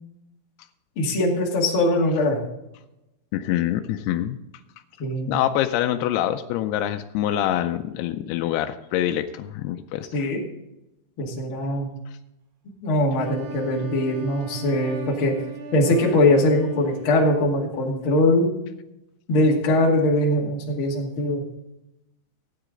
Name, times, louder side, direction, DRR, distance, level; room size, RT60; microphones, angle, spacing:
voice 1, 1.0-2.4 5.0-5.4 10.1-10.4 11.2-11.9 12.8-15.3 15.7-18.5 19.3-21.4, left 1 dB, 40° left, -2 dB, 2.5 m, -21 dB
voice 2, 3.3-4.4 5.3-10.3, left 12 dB, 85° left, 6 dB, 2.6 m, -25 dB
Wind instrument woodwind instrument, 13.2-17.5, right 4 dB, 70° right, 2.2 m, -39 dB
16.0 x 9.0 x 3.8 m, 0.91 s
omnidirectional pair, 4.6 m